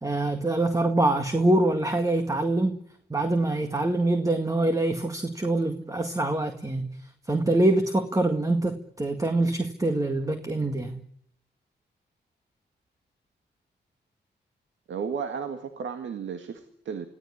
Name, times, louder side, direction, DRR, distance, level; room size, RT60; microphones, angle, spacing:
voice 1, 0.0-2.8 3.1-6.9 7.3-11.0, right 2 dB, 15° right, 2.0 m, -25 dB
voice 2, 14.9-17.1, right 6 dB, 85° right, 1.9 m, -33 dB
25.5 x 16.5 x 9.9 m
cardioid pair, 75°, 19 cm